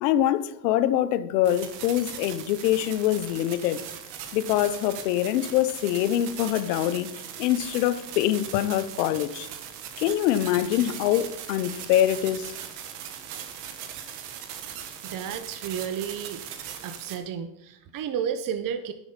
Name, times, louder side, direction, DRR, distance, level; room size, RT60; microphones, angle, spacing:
voice 1, 0.0-3.8 4.3-7.1 7.4-9.5 10.0-12.5, left 12 dB, 90° left, 0.8 m, -24 dB
sound 1, 1.4-17.2, right 9 dB, 80° right, 1.6 m, -39 dB
voice 2, 15.0-16.4 16.8-18.9, right 8 dB, 45° right, 0.9 m, -32 dB
10.5 x 6.2 x 5.6 m
supercardioid pair, 90°, 46 cm